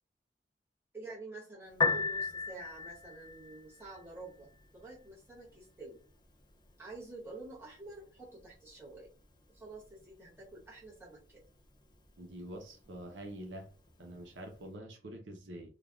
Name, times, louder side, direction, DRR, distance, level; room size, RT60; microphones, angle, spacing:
voice 1, 0.9-6.0 6.8-9.1 9.5-11.4, right 2 dB, 15° right, 1.4 m, -49 dB
Piano, 1.7-14.7, left 4 dB, 25° left, 0.4 m, -41 dB
voice 2, 12.2-13.7 14.0-15.7, right 1 dB, 85° right, 0.7 m, -46 dB
3.3 x 2.2 x 2.4 m
head